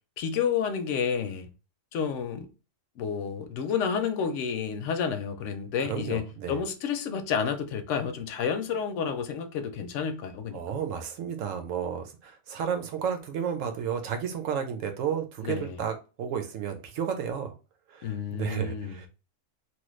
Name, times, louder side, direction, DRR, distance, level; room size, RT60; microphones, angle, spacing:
voice 1, 0.2-1.5 1.9-2.5 3.0-10.6 15.4-15.8 18.0-18.9, left 7 dB, 75° left, 0.9 m, -30 dB
voice 2, 5.8-6.6 10.5-17.5 17.9-19.1, right 8 dB, 80° right, 1.1 m, -32 dB
3.0 x 2.3 x 3.1 m
omnidirectional pair, 1.3 m